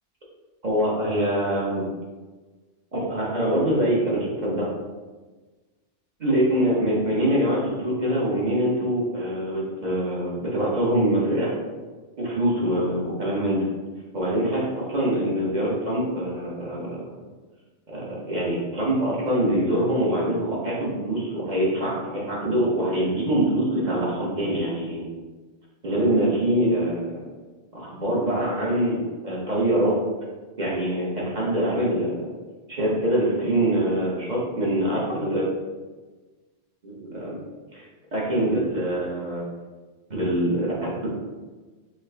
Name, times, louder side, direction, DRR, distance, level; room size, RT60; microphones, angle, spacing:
voice 1, 0.6-1.8 2.9-4.7 6.2-11.5 12.2-13.6 14.1-17.2 17.9-25.0 25.8-27.1 27.7-30.0 30.6-32.2 32.7-35.4 36.8-37.4 37.7-37.8 38.1-39.4 40.1-41.1, right 1 dB, 40° right, -5 dB, 1.1 m, -24 dB
5.9 x 2.4 x 3.3 m, 1.3 s
omnidirectional pair, 1.2 m